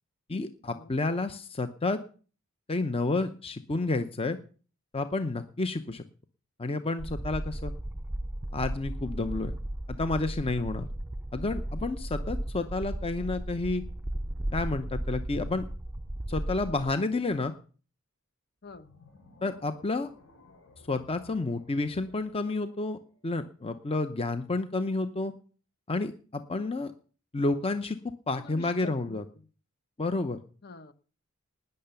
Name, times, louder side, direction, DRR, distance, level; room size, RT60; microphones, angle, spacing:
voice 1, 0.3-2.0 2.7-4.4 4.9-6.0 6.6-7.7 8.5-9.5 10.0-10.9 11.3-13.8 14.5-15.7 16.3-17.5 19.4-20.1 20.9-25.3 25.9-26.9 27.3-28.0 28.3-29.2 30.0-30.4, left 3 dB, 25° left, 9 dB, 0.7 m, -30 dB
sound 1, 7.0-16.9, right 1 dB, 10° right, 0.6 m, -35 dB
sound 2, 18.6-23.9, left 2 dB, 70° left, 6.0 m, -58 dB
voice 2, 28.3-29.5 30.6-30.9, left 3 dB, 50° left, 12 dB, 1.0 m, -47 dB
19.0 x 6.7 x 7.0 m, 0.41 s
head